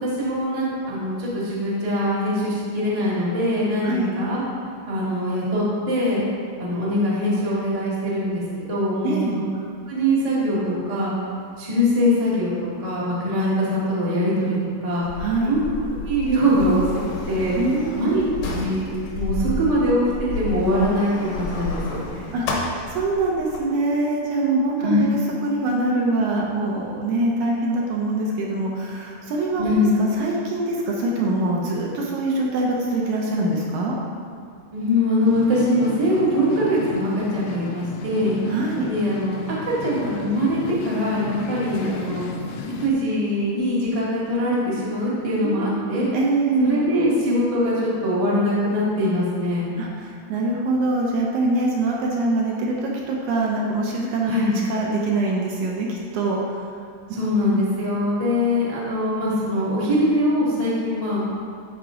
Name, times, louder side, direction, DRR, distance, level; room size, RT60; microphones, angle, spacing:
voice 1, 0.0-4.4 4.9-6.2 6.6-9.5 9.9-11.1 11.6-12.5 12.8-14.6 14.8-15.0 15.5-15.6 15.9-17.6 17.9-18.2 18.5-22.2 24.8-25.0 29.6-29.9 34.7-38.4 38.9-42.2 42.8-46.1 46.6-49.7 54.3-54.5 57.1-61.2, equal, 30° right, -8 dB, 0.6 m, -22 dB
voice 2, 9.0-9.4 15.2-15.5 17.6-18.3 22.3-34.0 38.5-38.9 45.4-46.8 49.8-54.3 54.7-56.4, right 2 dB, 70° right, -2 dB, 2.0 m, -24 dB
Sliding door, 15.0-23.6, left 2 dB, 65° left, 1.9 m, -31 dB
sound 1, 35.2-42.9, left 5 dB, 80° left, 2.2 m, -34 dB
11.5 x 4.6 x 3.8 m, 2.2 s
omnidirectional pair, 4.0 m